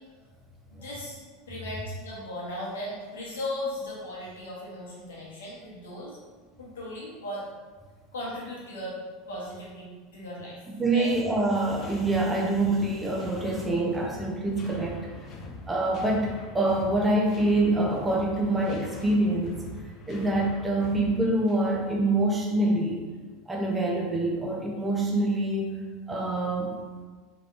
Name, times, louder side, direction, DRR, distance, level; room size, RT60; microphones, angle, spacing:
voice 1, 0.7-1.2 1.5-6.2 6.6-7.4 8.1-9.0 9.3-10.7 10.9-11.1, left 1 dB, 75° left, -5 dB, 1.1 m, -37 dB
voice 2, 10.7-15.0 15.7-19.5 20.1-23.0 23.5-25.7 26.1-26.8, right 2 dB, 15° right, -2 dB, 0.7 m, -25 dB
sound 1, 11.1-21.9, left 2 dB, 40° left, 0.5 m, -43 dB
3.3 x 3.1 x 2.6 m, 1.4 s
figure-of-eight pair, 80°, 0 cm